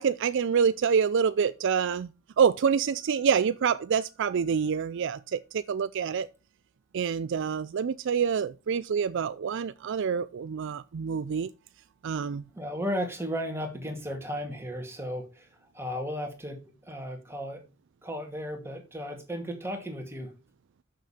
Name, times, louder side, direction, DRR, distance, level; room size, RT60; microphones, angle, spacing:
voice 1, 0.0-2.1 2.4-6.3 6.9-11.5 12.0-12.4, right 6 dB, 60° right, 0.4 m, -26 dB
voice 2, 12.5-15.5 15.7-17.6 18.0-20.3, equal, 10° right, 2.1 m, -35 dB
6.7 x 6.5 x 5.7 m
head